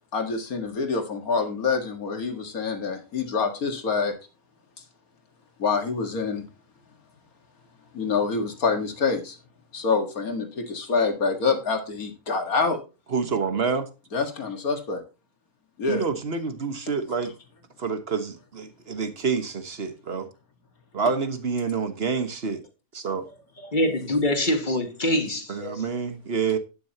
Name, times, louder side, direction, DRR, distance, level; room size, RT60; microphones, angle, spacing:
voice 1, 0.1-4.1 5.6-6.4 7.9-9.4 9.7-12.8 14.1-15.0 15.8-16.1, left 4 dB, 85° left, 2.3 m, -26 dB
voice 2, 13.1-13.9 15.9-17.3 17.8-20.3 20.9-22.6 22.9-23.2 25.5-26.6, right 5 dB, 45° right, 1.6 m, -27 dB
voice 3, 23.6-26.0, left 1 dB, 35° left, 2.1 m, -25 dB
11.5 x 9.8 x 2.9 m
omnidirectional pair, 1.5 m